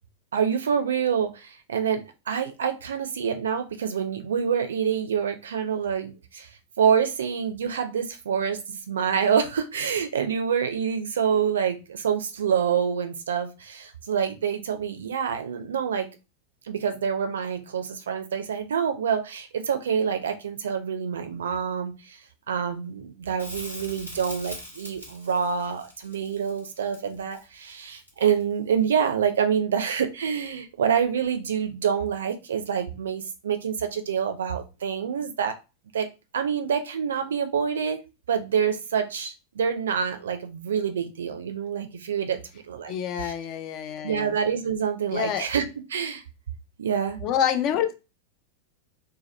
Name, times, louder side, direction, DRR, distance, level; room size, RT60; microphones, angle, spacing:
voice 1, 0.3-6.5 6.8-16.1 16.7-22.2 22.5-35.6 35.9-36.1 36.3-38.0 38.3-42.9 43.2-43.3 44.0-46.2 46.8-47.2, right 7 dB, 65° right, 8 dB, 0.4 m, -27 dB
Crackle, 23.4-28.5 31.3-31.4, left 1 dB, 85° left, 1.4 m, -42 dB
voice 2, 42.9-44.3 45.1-45.4 47.2-47.9, left 9 dB, 40° left, 7 dB, 0.5 m, -27 dB
2.8 x 2.2 x 3.1 m, 0.28 s
figure-of-eight pair, 90°, 0 cm